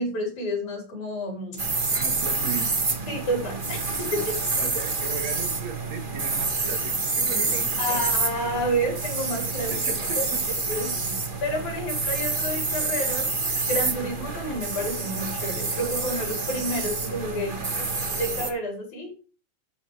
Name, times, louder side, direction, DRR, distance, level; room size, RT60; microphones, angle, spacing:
voice 1, 0.0-1.7 3.1-4.4 7.8-9.8 10.2-10.3 10.7-13.3 13.7-17.6 18.2-19.2, equal, 75° left, 6.0 m, -30 dB
sound 1, 1.6-18.5, right 3 dB, 25° right, 1.2 m, -28 dB
voice 2, 2.0-2.9 4.6-8.1 9.7-10.4, right 7 dB, 65° right, 2.7 m, -36 dB
13.5 x 8.0 x 3.4 m
omnidirectional pair, 3.4 m